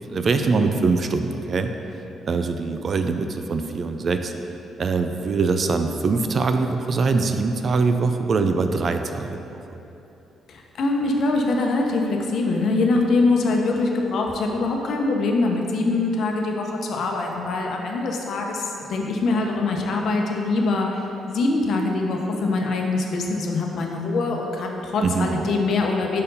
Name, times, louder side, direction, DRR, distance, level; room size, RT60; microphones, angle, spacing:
voice 1, 0.1-1.7 2.3-4.3 4.8-9.4 25.0-25.4, right 4 dB, 45° right, 7 dB, 0.4 m, -23 dB
voice 2, 10.5-26.2, left 3 dB, 65° left, 1 dB, 0.8 m, -23 dB
5.2 x 4.4 x 5.5 m, 3.0 s
cardioid pair, 90°, 0 cm